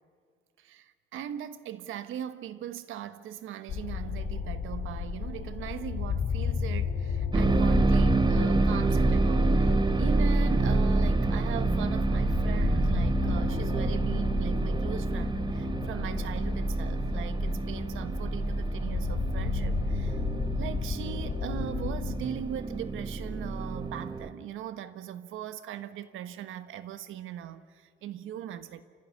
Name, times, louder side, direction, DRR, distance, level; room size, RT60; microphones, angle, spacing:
voice 1, 0.6-20.2 20.6-28.8, right 10 dB, 85° right, 1.3 m, -39 dB
sound 1, 3.7-22.2, left 6 dB, 70° left, 2.5 m, -34 dB
sound 2, 7.3-24.3, right 2 dB, 25° right, 1.2 m, -27 dB
28.5 x 15.0 x 9.8 m
cardioid pair, 90°, 20 cm